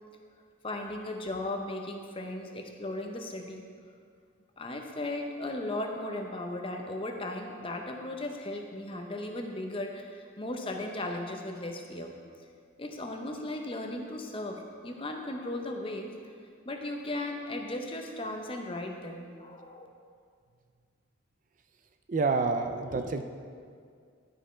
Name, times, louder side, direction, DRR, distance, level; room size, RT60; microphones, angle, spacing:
voice 1, 0.6-3.7 4.6-12.1 12.8-16.1 16.6-19.9, left 1 dB, 25° left, 3 dB, 0.6 m, -36 dB
voice 2, 22.1-23.2, right 4 dB, 40° right, 7 dB, 0.3 m, -28 dB
11.0 x 5.1 x 4.3 m, 2.2 s
head